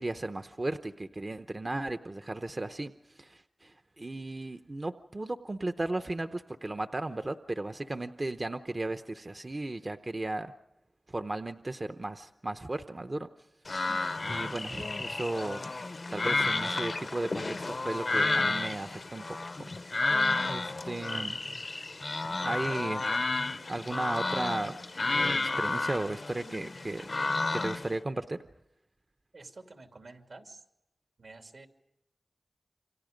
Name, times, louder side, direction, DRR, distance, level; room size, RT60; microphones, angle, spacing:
voice 1, 0.0-10.5 11.1-13.3 13.7-15.6 16.1-19.2 19.6-19.7 19.9-21.4 22.5-23.0 23.7-27.1 27.5-28.4, right 2 dB, 35° right, 9 dB, 0.8 m, -35 dB
sound 1, 13.7-27.9, left 3 dB, 55° left, 0.8 m, -31 dB
voice 2, 29.3-30.6 31.2-31.7, right 3 dB, 75° right, 5 dB, 2.7 m, -49 dB
28.5 x 25.5 x 5.2 m, 0.88 s
wide cardioid pair, 65°, 0 cm